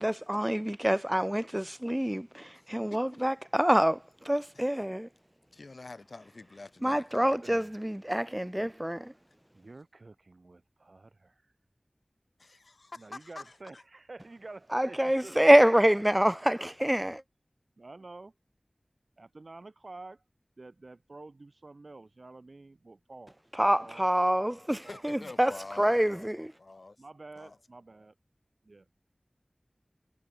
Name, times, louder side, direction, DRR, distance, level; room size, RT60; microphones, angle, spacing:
voice 1, 0.0-5.1 6.8-9.1 14.7-17.2 23.6-25.5 25.8-26.5, equal, 10° right, 0.4 m, -26 dB
voice 2, 2.5-3.2 4.5-4.9 5.5-7.4 12.4-13.8 24.7-27.0 27.3-27.6, left 3 dB, 70° left, 4.6 m, -47 dB
voice 3, 7.4-7.8 9.1-9.2 9.5-11.5 13.0-15.6 17.8-18.3 19.2-20.2 20.6-23.4 23.7-24.1 24.8-25.1 25.9-26.3 27.0-28.1 28.6-28.9, right 2 dB, 65° right, 6.3 m, -49 dB
wide cardioid pair, 50°, 0 cm